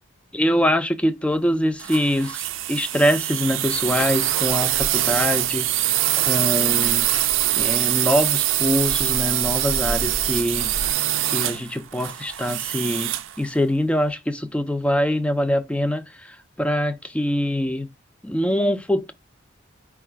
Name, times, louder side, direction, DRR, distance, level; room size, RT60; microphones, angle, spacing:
voice 1, 0.3-7.2 7.6-10.7 11.3-13.1 13.4-17.9 18.2-19.1, equal, 5° left, 0.3 m, -24 dB
sound 1, 1.8-13.4, right 13 dB, 70° right, 0.4 m, -23 dB
sound 2, 3.7-10.9, equal, 50° left, 0.7 m, -38 dB
4.6 x 2.4 x 4.5 m
head